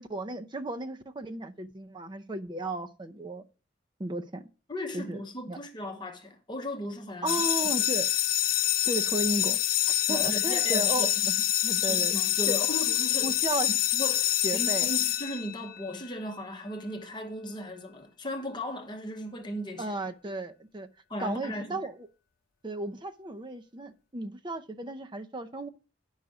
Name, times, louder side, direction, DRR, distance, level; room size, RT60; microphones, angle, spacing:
voice 1, 0.0-3.4 4.0-4.5 4.9-5.2 5.5-5.6 7.2-8.1 8.9-9.6 9.9-11.3 11.6-12.1 12.5-12.6 13.2-13.7 14.4-14.9 19.8-20.9 21.2-21.9 22.6-25.7, right 2 dB, 25° right, 0.6 m, -34 dB
voice 2, 4.7-7.4 10.1-11.3 11.8-13.3 13.7-19.9 21.1-21.9, left 1 dB, 25° left, 1.1 m, -37 dB
sound 1, 7.3-15.9, left 12 dB, 50° left, 0.4 m, -26 dB
9.8 x 5.6 x 4.9 m
head